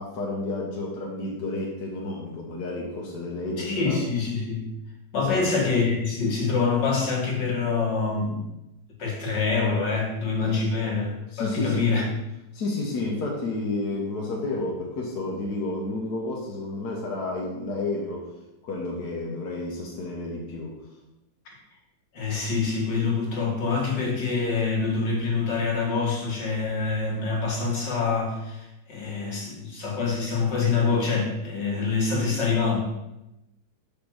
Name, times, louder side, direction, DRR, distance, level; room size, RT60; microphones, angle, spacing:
voice 1, 0.0-4.0 5.2-5.4 10.4-10.6 11.3-11.9 12.5-18.3 18.6-20.8, left 2 dB, 70° left, -2 dB, 1.6 m, -31 dB
voice 2, 3.6-4.7 5.1-8.5 9.0-12.1 22.1-32.8, left 4 dB, 85° left, -2 dB, 2.4 m, -25 dB
5.3 x 5.1 x 6.1 m, 0.91 s
omnidirectional pair, 1.9 m